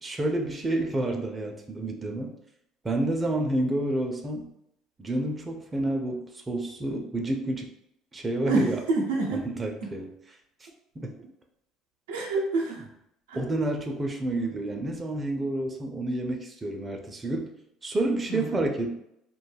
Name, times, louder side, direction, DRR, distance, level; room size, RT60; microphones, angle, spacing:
voice 1, 0.0-2.3 2.8-4.5 5.0-7.7 8.1-8.8 9.3-10.1 11.0-11.1 13.3-17.5 17.8-19.0, right 1 dB, 25° right, 2 dB, 0.5 m, -29 dB
voice 2, 8.4-9.4 12.1-12.9 13.3-13.4 18.3-18.6, right 3 dB, 90° right, -1 dB, 0.5 m, -27 dB
2.2 x 2.1 x 3.3 m, 0.79 s
hypercardioid pair, 70°, 0 cm